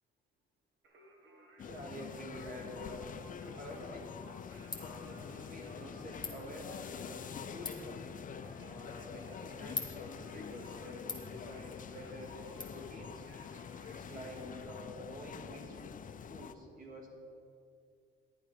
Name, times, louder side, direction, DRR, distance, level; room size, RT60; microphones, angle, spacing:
Singing, 0.8-14.6, right 1 dB, 70° right, 1.4 m, -59 dB
sound 1, 1.6-16.5, left 7 dB, 40° left, 0.5 m, -46 dB
voice 1, 1.6-3.1 3.6-4.0 4.8-8.0 8.6-13.3 13.9-15.8 16.3-17.1, equal, 45° right, -1 dB, 2.6 m, -48 dB
Ratchet pawl, 3.5-12.6, left 3 dB, 20° left, 1.6 m, -48 dB
11.0 x 8.8 x 5.1 m, 2.4 s
cardioid pair, 90°, 20 cm